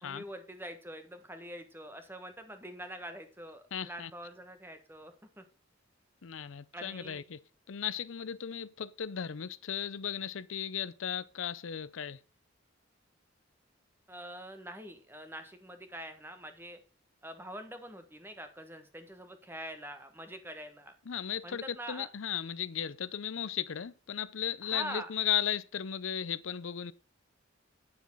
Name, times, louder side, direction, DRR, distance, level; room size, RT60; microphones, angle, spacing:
voice 1, 0.0-5.4 6.7-7.2 14.1-16.8 17.2-20.9 21.4-22.1 24.6-25.1, right 1 dB, 10° right, 1.4 m, -45 dB
voice 2, 3.7-4.1 6.2-7.4 7.7-12.2 21.1-26.9, left 9 dB, 85° left, 0.5 m, -36 dB
9.8 x 7.1 x 5.5 m
head